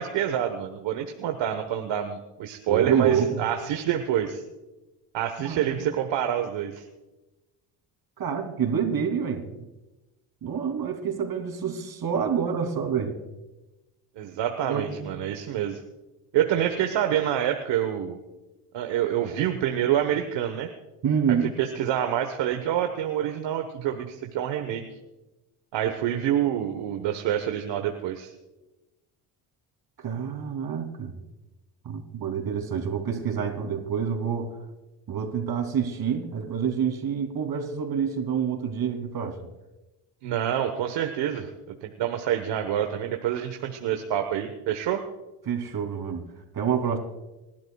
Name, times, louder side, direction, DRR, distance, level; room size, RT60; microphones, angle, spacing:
voice 1, 0.0-4.4 5.1-6.8 14.2-15.8 16.3-18.2 18.7-20.7 21.6-24.8 25.7-28.3 40.2-45.0, right 10 dB, 70° right, 5 dB, 1.3 m, -27 dB
voice 2, 2.7-3.4 5.4-5.9 8.2-9.7 10.4-13.2 14.6-15.2 21.0-21.5 30.0-31.1 31.8-34.5 35.1-39.4 45.5-46.2 46.5-47.0, right 7 dB, 50° right, 4 dB, 3.1 m, -27 dB
27.0 x 12.0 x 2.4 m, 1.0 s
supercardioid pair, 80°, 45 cm